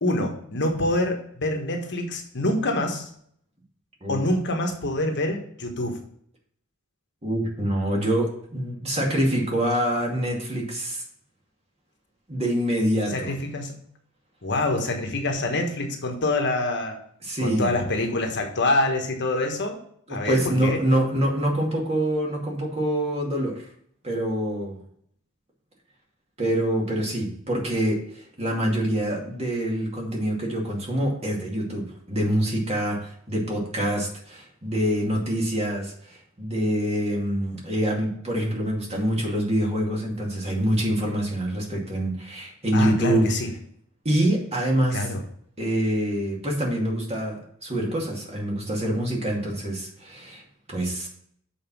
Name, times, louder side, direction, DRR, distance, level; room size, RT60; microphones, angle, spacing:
voice 1, 0.0-3.1 4.1-6.0 13.1-13.8 14.4-17.0 17.4-19.8 20.1-20.8 42.7-43.5 44.9-45.2, left 2 dB, 55° left, 3 dB, 1.4 m, -26 dB
voice 2, 7.2-11.0 12.3-13.3 17.2-17.7 20.1-23.6 24.0-24.8 26.4-43.2 44.0-45.1 45.6-50.4 50.7-51.1, right 1 dB, 30° right, -1 dB, 2.4 m, -25 dB
7.2 x 4.8 x 6.0 m, 0.65 s
head